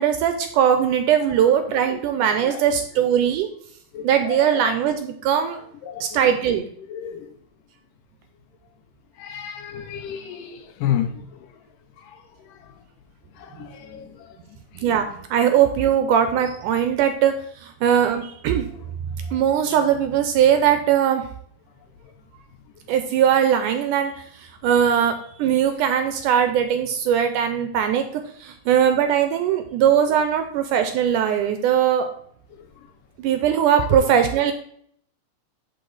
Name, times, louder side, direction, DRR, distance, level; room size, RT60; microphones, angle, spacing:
voice 1, 0.0-3.5 4.0-5.6 6.0-6.6 14.8-15.1 15.3-17.3 17.6-18.7 19.3-21.2 22.9-24.1 24.6-32.1 33.2-34.5, right 9 dB, 80° right, 1.9 m, -20 dB
voice 2, 3.9-4.8 5.8-6.2 6.5-7.4 9.2-11.5 12.0-12.7 13.4-14.4 14.7-14.9 32.5-32.7 33.7-33.9, left 10 dB, 80° left, 2.3 m, -32 dB
10.5 x 3.8 x 4.0 m
omnidirectional pair, 4.0 m